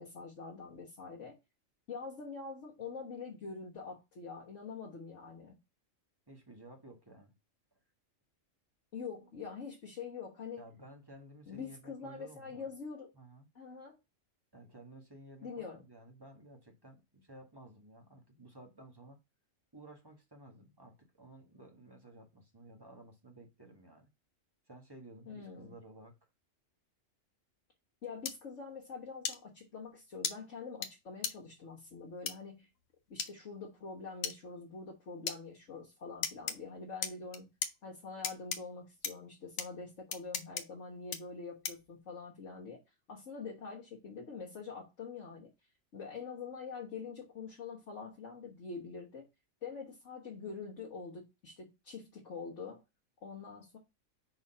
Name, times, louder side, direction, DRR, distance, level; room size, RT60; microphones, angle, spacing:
voice 1, 0.0-1.4 1.9-5.6 8.9-10.6 11.5-13.1 13.5-14.0 15.4-15.8 25.3-25.7 28.0-32.7 33.1-37.5 37.8-42.8 43.1-45.5 45.9-49.3 49.6-52.8 53.2-53.8, left 5 dB, 70° left, 1.6 m, -45 dB
voice 2, 6.3-7.3 10.6-12.7 13.1-13.5 14.5-19.2 19.7-24.1 24.7-26.2, right 1 dB, 20° right, 1.5 m, -54 dB
sound 1, 28.3-28.4 29.2-29.4 30.2-30.3 30.8-30.9 31.2-31.3 32.3-32.4 33.2-33.3 34.2-34.4 35.3-35.4 36.2-36.6 37.0-37.7 38.2-38.6 39.0-39.1 39.6-39.7 40.1-40.6 41.1-41.2 41.6-41.9, left 7 dB, 85° left, 1.2 m, -35 dB
4.9 x 4.0 x 5.5 m
omnidirectional pair, 1.3 m